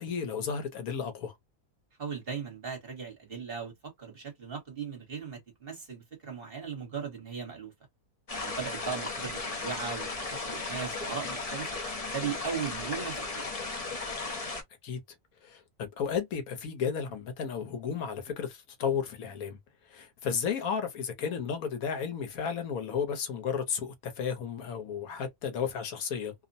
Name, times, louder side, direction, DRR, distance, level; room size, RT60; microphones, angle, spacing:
voice 1, 0.0-1.4 14.8-15.0 15.4-19.6 19.8-26.3, left 7 dB, 70° left, 1.2 m, -33 dB
voice 2, 2.0-7.7 8.4-11.7 12.1-13.5, right 6 dB, 40° right, 1.2 m, -38 dB
sound 1, 8.3-14.6, left 3 dB, 35° left, 0.7 m, -36 dB
2.8 x 2.1 x 2.6 m
omnidirectional pair, 1.6 m